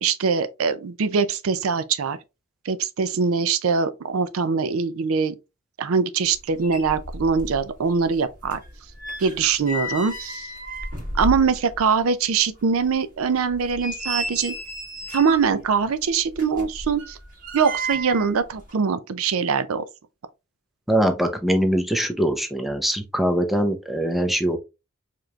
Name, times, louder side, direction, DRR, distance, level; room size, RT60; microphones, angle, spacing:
voice 1, 0.0-2.2 2.7-5.4 5.8-8.6 9.2-10.5 11.2-14.5 15.1-17.2 17.5-19.8, right 5 dB, 70° right, 0.4 m, -22 dB
sound 1, 6.3-6.4 6.6-7.6 7.9-11.8 12.2-12.3 12.8-12.9 13.5-15.5 16.3-18.3 18.6-18.7, right 1 dB, 40° right, 1.8 m, -32 dB
voice 2, 20.9-24.6, right 1 dB, ahead, 0.6 m, -22 dB
4.9 x 3.0 x 2.3 m
head